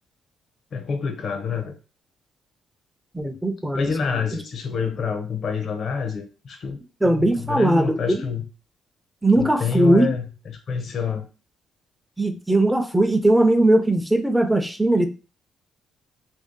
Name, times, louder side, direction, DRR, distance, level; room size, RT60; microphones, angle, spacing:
voice 1, 0.7-1.7 3.7-6.8 7.0-8.5 9.3-11.3, left 5 dB, 55° left, 5 dB, 0.6 m, -27 dB
voice 2, 3.1-4.2 7.0-8.2 9.2-10.1 12.2-15.1, right 1 dB, 5° right, 7 dB, 0.6 m, -19 dB
3.0 x 2.7 x 3.6 m, 0.34 s
cardioid pair, 90°, 0 cm